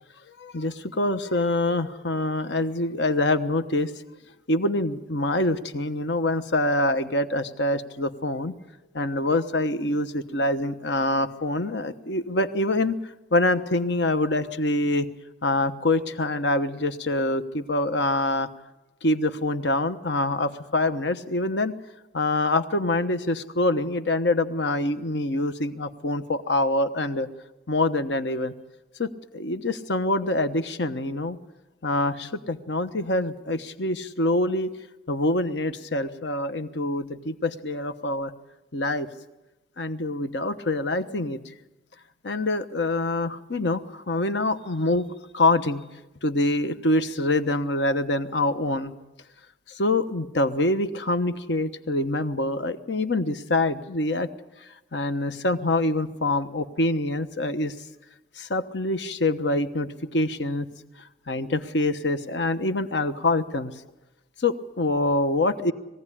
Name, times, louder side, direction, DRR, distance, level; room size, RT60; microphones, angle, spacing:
voice 1, 0.4-3.9 4.5-8.5 8.9-12.9 13.3-15.1 15.4-18.5 19.0-21.7 22.1-27.3 27.7-28.5 29.0-31.4 31.8-34.7 35.1-38.3 38.7-39.1 39.8-41.4 42.2-45.0 45.3-45.8 46.2-48.9 49.7-54.3 54.9-57.7 58.4-60.7 61.3-63.7 64.4-65.7, left 2 dB, 70° left, 10 dB, 1.1 m, -25 dB
21.5 x 16.0 x 10.0 m, 1.0 s
head